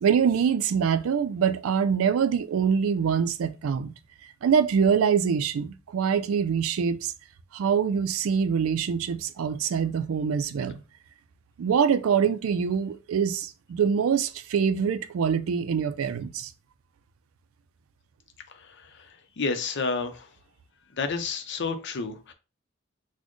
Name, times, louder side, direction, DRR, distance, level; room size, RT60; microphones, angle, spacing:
voice 1, 0.0-3.9 4.4-7.1 7.5-10.8 11.6-16.5, right 7 dB, 85° right, 0.4 m, -24 dB
voice 2, 18.5-19.1 19.4-20.3 21.0-22.3, left 4 dB, 60° left, 0.6 m, -30 dB
4.1 x 2.1 x 3.0 m
head